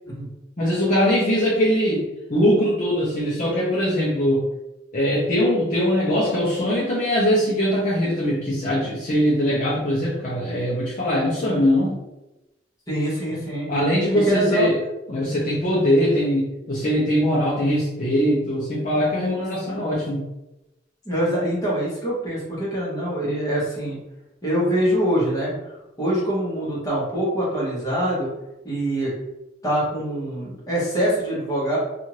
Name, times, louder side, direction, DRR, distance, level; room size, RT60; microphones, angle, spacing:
voice 1, 0.6-4.4 4.9-12.0 13.7-14.8 15.1-20.2, equal, 45° left, -7 dB, 0.7 m, -21 dB
voice 2, 12.9-13.7 14.1-14.7 21.0-24.0 24.4-25.5 26.0-28.3 28.6-29.1 29.6-31.8, right 1 dB, 20° left, -7 dB, 1.2 m, -24 dB
2.7 x 2.5 x 3.0 m, 0.95 s
head